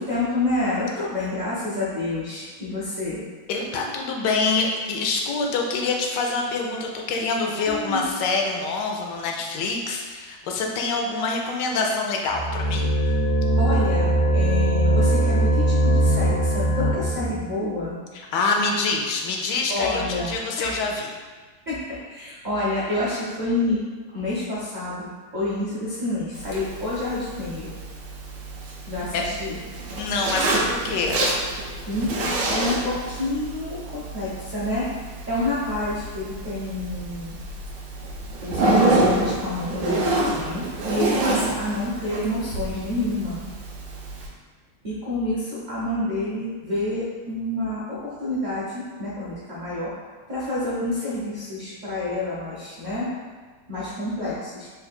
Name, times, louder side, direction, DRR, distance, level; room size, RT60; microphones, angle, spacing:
voice 1, 0.0-3.2 7.7-8.0 13.6-18.0 19.7-20.3 20.6-20.8 21.7-23.8 24.1-27.7 28.9-29.6 31.9-34.9 35.3-37.4 38.4-43.4 44.8-49.9 50.3-53.1 53.7-54.7, left 2 dB, 50° right, -10 dB, 0.5 m, -28 dB
voice 2, 3.5-12.9 18.1-21.1 29.1-29.2 29.9-31.2, left 3 dB, 75° left, 1 dB, 1.1 m, -26 dB
sound 1, 12.3-17.4, right 1 dB, 30° left, 0.6 m, -21 dB
Zipper (clothing), 26.3-44.3, right 2 dB, 65° right, 1.0 m, -28 dB
3.8 x 2.5 x 4.2 m, 1.4 s
omnidirectional pair, 2.0 m